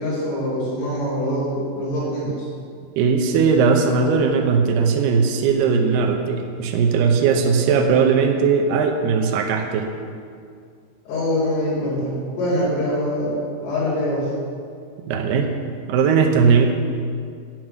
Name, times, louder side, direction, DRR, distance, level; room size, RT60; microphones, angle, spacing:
voice 1, 0.0-2.5 11.1-13.4 13.6-14.3, left 1 dB, 80° left, -9 dB, 6.3 m, -24 dB
voice 2, 3.0-9.9 15.1-15.5 15.9-16.7, right 5 dB, 80° right, 4 dB, 2.3 m, -18 dB
11.0 x 6.1 x 8.9 m, 2.2 s
omnidirectional pair, 5.8 m